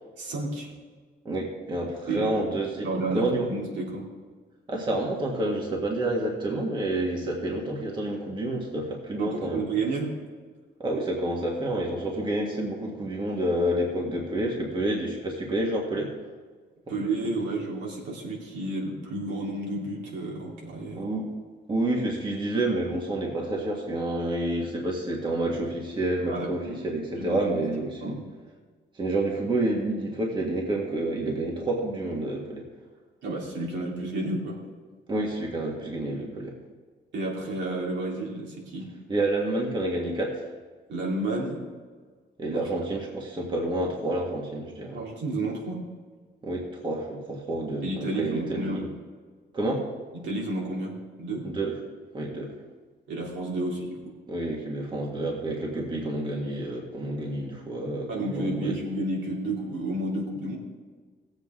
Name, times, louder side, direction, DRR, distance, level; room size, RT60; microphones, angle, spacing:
voice 1, 0.2-0.7 2.1-2.4 2.8-4.1 9.2-10.1 16.9-21.1 26.3-26.7 27.1-27.6 28.0-28.2 33.2-34.6 37.1-38.9 40.9-41.6 42.5-42.6 44.9-45.8 47.8-48.9 50.1-51.5 53.1-54.1 58.1-60.6, right 2 dB, 85° right, -3 dB, 3.1 m, -31 dB
voice 2, 1.3-2.9 3.1-3.5 4.7-9.6 10.8-16.1 20.9-21.3 21.7-28.2 29.0-32.6 35.1-36.5 39.1-40.4 42.4-45.0 46.4-48.8 49.5-49.9 51.4-51.7 52.1-52.5 54.3-58.7, right 1 dB, 25° right, -1 dB, 1.8 m, -29 dB
17.5 x 7.9 x 3.8 m, 1.5 s
cardioid pair, 155°, 18 cm